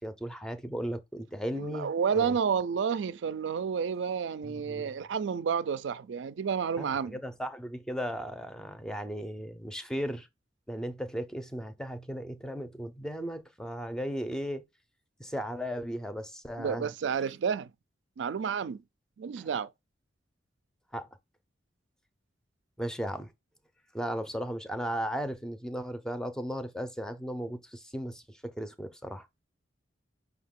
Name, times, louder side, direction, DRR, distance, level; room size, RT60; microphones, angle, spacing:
voice 1, 0.0-2.4 4.4-4.9 6.8-10.3 10.7-14.6 15.2-16.9 19.4-19.5 20.9-21.1 22.8-23.3 23.9-29.3, equal, 5° left, 0.5 m, -36 dB
voice 2, 1.5-7.2 16.6-17.7 18.2-18.8 19.2-19.7, right 6 dB, 75° right, 0.4 m, -30 dB
5.6 x 2.3 x 3.6 m
head